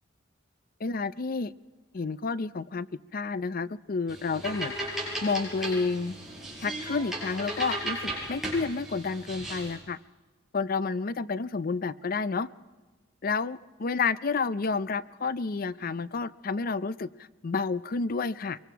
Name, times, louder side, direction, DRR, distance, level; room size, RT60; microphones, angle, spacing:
voice 1, 0.8-1.5 1.9-2.9 3.1-6.2 6.6-10.0 10.5-12.5 13.2-17.1 17.4-18.6, left 4 dB, 50° left, 16 dB, 0.5 m, -30 dB
sound 1, 4.1-9.8, right 1 dB, ahead, 6.9 m, -36 dB
24.0 x 23.0 x 4.6 m, 1.3 s
head